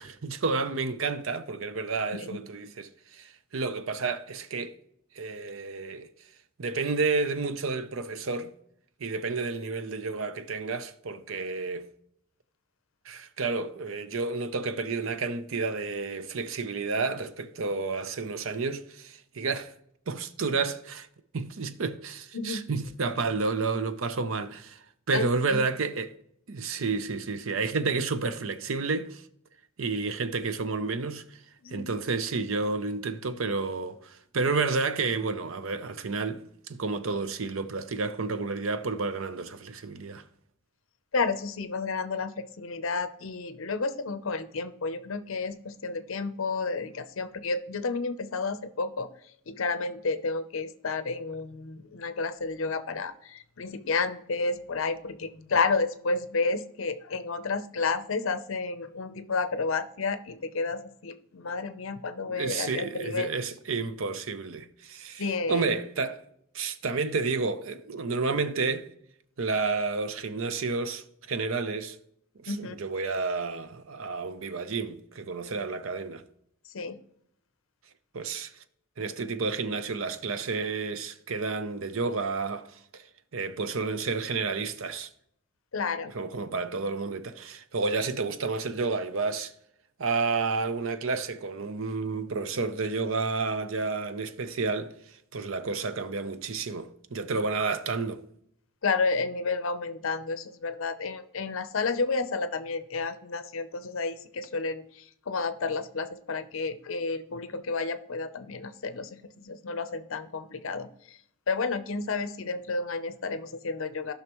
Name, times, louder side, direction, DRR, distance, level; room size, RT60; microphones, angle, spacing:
voice 1, 0.0-4.7 5.2-6.1 6.6-8.5 9.0-11.9 13.1-19.7 20.1-21.1 21.3-24.8 25.1-26.1 26.5-29.2 29.8-31.2 31.7-40.2 62.3-66.2 66.5-68.9 69.4-72.0 72.4-76.2 78.1-78.5 79.0-82.7 82.9-83.0 83.3-85.1 86.1-89.5 90.0-94.9 95.3-98.2, right 4 dB, 70° right, 0.7 m, -30 dB
voice 2, 22.3-22.6 25.1-25.6 31.6-31.9 41.1-49.1 49.5-63.3 65.2-65.7 72.5-72.8 76.7-77.0 85.7-86.1 98.8-111.2 111.5-114.1, left 4 dB, 65° left, 0.7 m, -31 dB
15.5 x 5.7 x 3.0 m
head